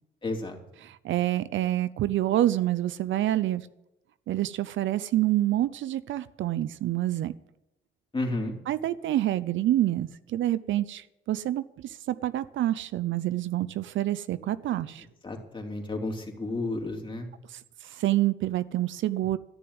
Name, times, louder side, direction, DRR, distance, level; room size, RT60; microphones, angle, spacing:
voice 1, 0.2-0.6 8.1-8.6 14.8-14.9 15.2-17.3, left 2 dB, 25° left, 1 dB, 3.2 m, -32 dB
voice 2, 0.8-3.7 4.3-7.3 8.7-15.1 17.5-19.4, right 14 dB, 75° right, 15 dB, 0.6 m, -27 dB
14.0 x 6.9 x 9.7 m, 0.87 s
cardioid pair, 90°, 20 cm